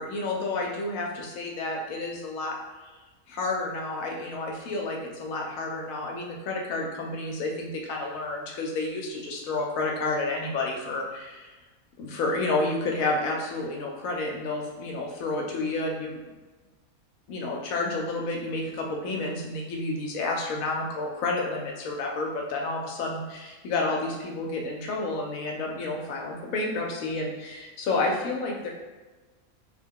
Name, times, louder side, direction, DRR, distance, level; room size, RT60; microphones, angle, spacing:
voice 1, 0.0-2.6 3.3-11.5 12.0-16.2 17.3-23.2 23.6-28.7, left 2 dB, 70° left, 0 dB, 1.0 m, -30 dB
2.9 x 2.1 x 3.5 m, 1.2 s
omnidirectional pair, 1.5 m